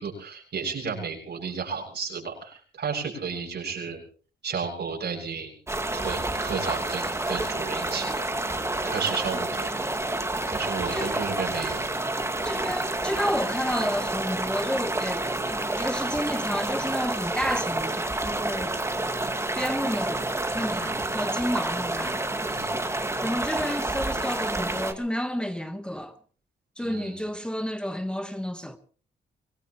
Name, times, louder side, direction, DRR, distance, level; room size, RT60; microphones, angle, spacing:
voice 1, 0.0-4.0 4.4-5.5 5.9-8.3 8.9-9.7 10.5-11.8 20.7-21.0 22.5-22.8 26.8-27.3, right 5 dB, 70° right, 7.3 m, -33 dB
sound 1, 5.7-24.9, right 2 dB, 15° right, 1.9 m, -29 dB
voice 2, 12.4-18.8 19.5-20.3 20.5-22.3 23.2-26.1 26.8-28.8, equal, 5° left, 1.2 m, -31 dB
24.5 x 18.5 x 3.1 m
cardioid pair, 90°, 18 cm